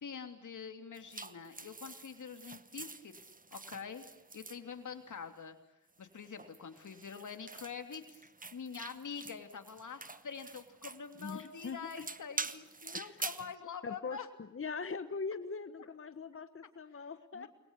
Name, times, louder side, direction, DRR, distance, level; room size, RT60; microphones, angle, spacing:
voice 1, 0.0-4.0 4.3-5.6 6.0-8.2 8.5-14.3 17.3-17.5, left 6 dB, 90° left, 7 dB, 3.1 m, -45 dB
sound 1, 0.9-5.3 6.0-13.5, right 3 dB, 30° right, 1.2 m, -46 dB
voice 2, 11.2-11.8 12.9-13.2 13.8-14.2 14.5-17.5, left 4 dB, 45° left, 11 dB, 1.3 m, -41 dB
29.0 x 22.0 x 8.3 m, 0.82 s
wide cardioid pair, 75°, 29 cm